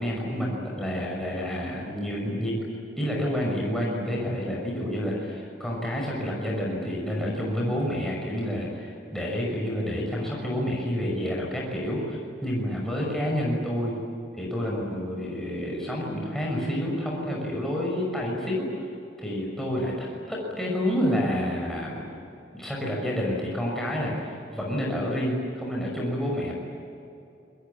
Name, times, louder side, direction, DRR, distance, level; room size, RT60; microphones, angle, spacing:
voice 1, 0.0-2.5 3.0-13.9 14.4-18.7 19.2-22.1 22.5-26.5, equal, ahead, -3 dB, 6.2 m, -29 dB
27.0 x 22.5 x 8.6 m, 2.7 s
head